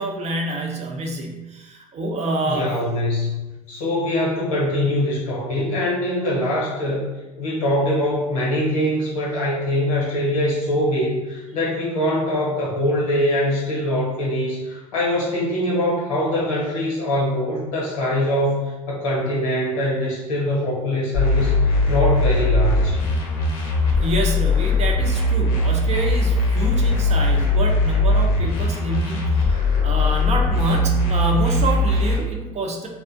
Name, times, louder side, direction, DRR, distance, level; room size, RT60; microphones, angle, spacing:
voice 1, 0.0-2.7 24.0-32.9, right 2 dB, 40° right, 1 dB, 0.5 m, -27 dB
voice 2, 2.5-7.1 7.4-23.0, left 1 dB, 85° left, -5 dB, 0.9 m, -23 dB
sound 1, 21.1-32.2, left 2 dB, 60° left, 0.7 m, -20 dB
2.5 x 2.0 x 2.5 m, 1.0 s
hypercardioid pair, 65°, 17 cm